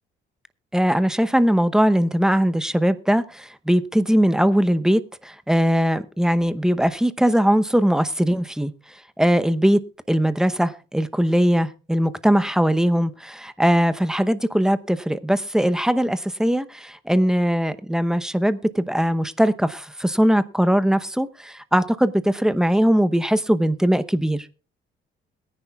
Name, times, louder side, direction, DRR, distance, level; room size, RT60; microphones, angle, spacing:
voice 1, 0.7-8.7 9.2-9.8 10.1-24.5, equal, 5° right, 0.8 m, -20 dB
21.5 x 10.0 x 2.4 m
cardioid pair, 90°, 20 cm